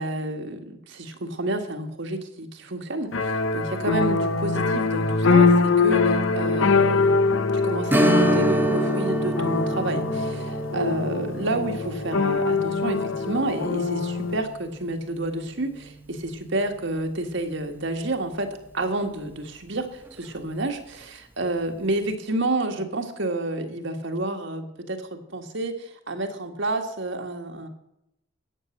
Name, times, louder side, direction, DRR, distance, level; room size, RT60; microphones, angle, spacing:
voice 1, 0.0-27.7, right 2 dB, 60° right, 5 dB, 1.7 m, -30 dB
sound 1, 3.1-14.4, left 4 dB, 70° left, 0.8 m, -23 dB
Strum, 7.9-17.1 17.4-17.5 20.1-20.2 20.7-20.8, right 1 dB, 10° right, 0.8 m, -28 dB
14.0 x 9.0 x 6.5 m, 0.85 s
head